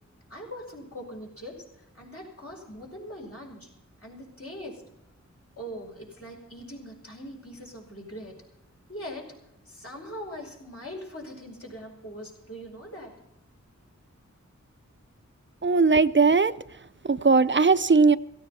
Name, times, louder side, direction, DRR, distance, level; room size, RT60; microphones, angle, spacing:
voice 1, 0.3-3.7 4.0-4.8 5.6-8.4 8.9-9.4 9.7-13.2, equal, 50° left, 5.2 m, -41 dB
voice 2, 15.6-18.2, right 4 dB, 40° right, 0.6 m, -20 dB
16.5 x 16.0 x 4.2 m
wide cardioid pair, 60°, 30 cm